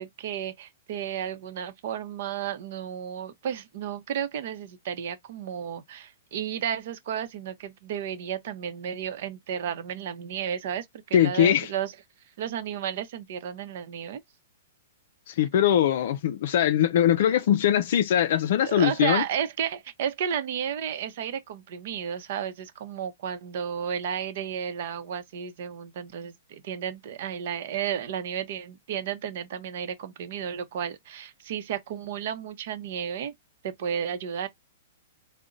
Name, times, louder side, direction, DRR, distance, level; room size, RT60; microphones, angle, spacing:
voice 1, 0.0-11.9 12.4-14.2 18.6-33.3 33.6-34.5, right 8 dB, 60° right, 0.7 m, -33 dB
voice 2, 11.1-11.7 15.3-19.2, left 10 dB, 60° left, 0.4 m, -22 dB
3.7 x 2.1 x 3.8 m
hypercardioid pair, 135°, 0 cm